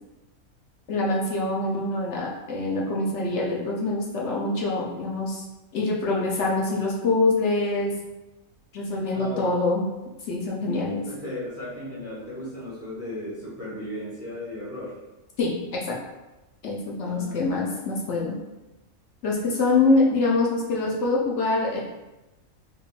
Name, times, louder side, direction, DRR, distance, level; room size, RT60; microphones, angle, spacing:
voice 1, 0.9-5.4 5.7-7.9 8.7-9.9 10.3-11.0 15.4-15.9 16.6-18.4 19.2-21.8, left 2 dB, 65° left, -3 dB, 0.8 m, -25 dB
voice 2, 9.1-9.5 11.0-15.0 17.0-17.8, left 1 dB, 10° right, -8 dB, 0.9 m, -36 dB
3.5 x 3.4 x 2.4 m, 1.0 s
omnidirectional pair, 1.5 m